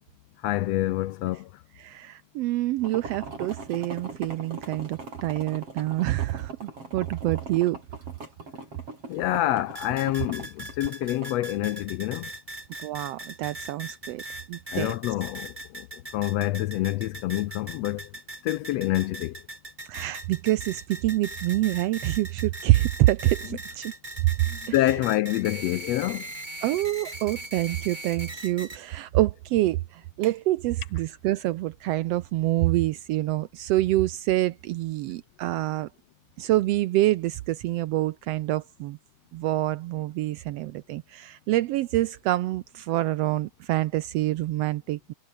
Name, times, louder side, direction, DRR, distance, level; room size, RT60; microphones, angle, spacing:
voice 1, 0.4-1.5 9.1-12.3 14.7-15.9 16.1-18.1 18.4-19.4 24.5-26.3, left 15 dB, 80° left, 1.5 m, -27 dB
voice 2, 1.8-7.8 12.8-14.2 14.5-15.0 19.8-23.9 24.4-24.5 26.6-35.9 36.4-39.0 39.3-45.1, right 16 dB, 85° right, 1.4 m, -26 dB
sound 1, 2.8-11.3, right 3 dB, 45° right, 7.8 m, -40 dB
sound 2, 9.7-28.8, right 1 dB, 15° right, 4.5 m, -40 dB
omnidirectional pair, 3.6 m